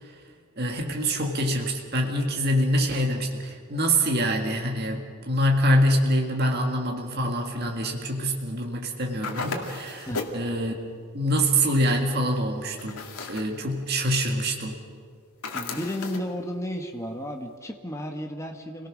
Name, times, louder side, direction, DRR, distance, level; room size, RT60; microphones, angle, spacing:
voice 1, 0.6-10.7 11.1-14.8, equal, 45° right, 1 dB, 1.9 m, -25 dB
sound 1, 9.2-10.5 12.8-13.5 15.4-16.3, left 3 dB, 80° left, 2.2 m, -34 dB
voice 2, 15.5-18.9, equal, 15° left, 3 dB, 1.3 m, -33 dB
27.5 x 18.0 x 6.3 m, 2.1 s
head